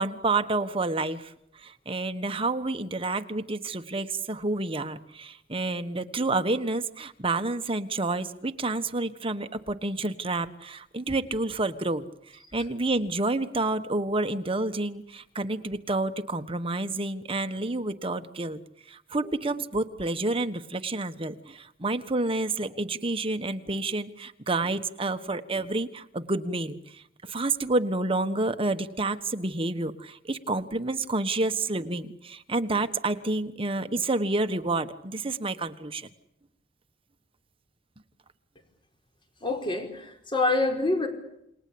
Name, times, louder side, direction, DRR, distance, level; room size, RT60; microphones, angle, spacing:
voice 1, 0.0-18.6 18.9-36.1, right 2 dB, 30° right, 9 dB, 1.4 m, -29 dB
voice 2, 39.4-41.1, left 2 dB, 30° left, 4 dB, 5.1 m, -26 dB
29.0 x 20.5 x 8.7 m, 0.78 s
head